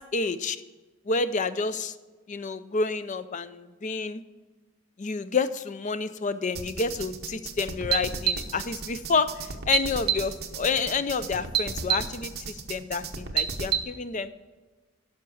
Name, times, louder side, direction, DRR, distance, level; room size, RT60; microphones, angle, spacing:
voice 1, 0.1-0.6 1.1-1.9 2.3-4.2 5.0-14.3, left 4 dB, 35° left, 13 dB, 0.5 m, -29 dB
sound 1, 6.6-13.8, right 8 dB, 50° right, 1.0 m, -30 dB
12.5 x 5.9 x 6.3 m, 1.3 s
head